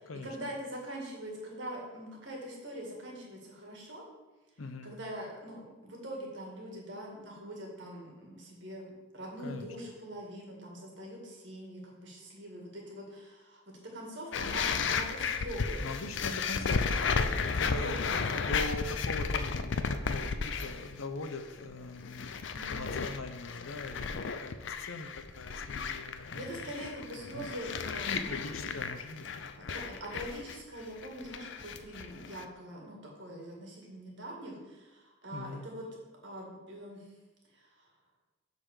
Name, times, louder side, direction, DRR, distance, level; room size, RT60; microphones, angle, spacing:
voice 1, 0.2-4.0 4.8-8.9 9.1-15.8 17.5-18.6 22.5-23.1 26.3-28.4 29.6-35.8 36.2-37.1 37.5-37.9, equal, 60° right, -1 dB, 2.0 m, -43 dB
voice 2, 4.6-5.0 9.4-9.7 15.8-17.9 18.4-22.4 22.7-26.4 28.0-29.7 35.3-35.7, left 2 dB, 90° left, 8 dB, 0.8 m, -41 dB
sound 1, 14.3-20.9 21.2-21.6 22.0-32.5, left 5 dB, 60° left, 0.4 m, -34 dB
7.7 x 4.0 x 6.5 m, 1.2 s
head